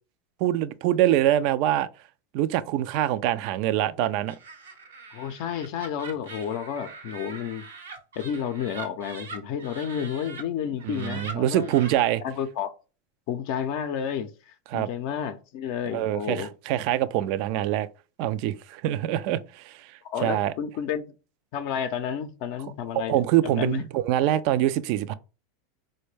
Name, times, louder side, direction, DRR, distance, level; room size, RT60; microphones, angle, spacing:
voice 1, 0.4-1.9 2.3-4.3 10.8-12.2 14.7-14.9 15.9-17.9 18.2-19.8 20.2-20.5 23.1-25.1, right 12 dB, 60° right, 0.3 m, -24 dB
Laughter, 4.3-10.4 10.8-12.0, right 4 dB, 90° right, 0.9 m, -42 dB
voice 2, 5.1-7.7 8.2-11.7 12.2-12.7 13.3-16.5 20.0-21.0 21.5-23.8, left 8 dB, 60° left, 0.5 m, -31 dB
4.3 x 2.2 x 3.2 m
hypercardioid pair, 95°, 0 cm